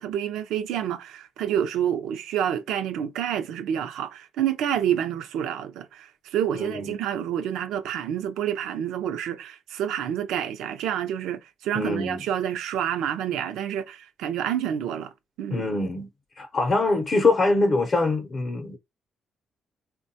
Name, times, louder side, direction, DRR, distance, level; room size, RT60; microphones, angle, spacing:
voice 1, 0.0-15.1 15.4-15.7, right 9 dB, 90° right, 0.4 m, -28 dB
voice 2, 6.5-7.0 11.7-12.2 15.5-16.1 16.4-18.8, left 3 dB, 40° left, 0.6 m, -24 dB
3.7 x 2.2 x 2.7 m
cardioid pair, 90°, 0 cm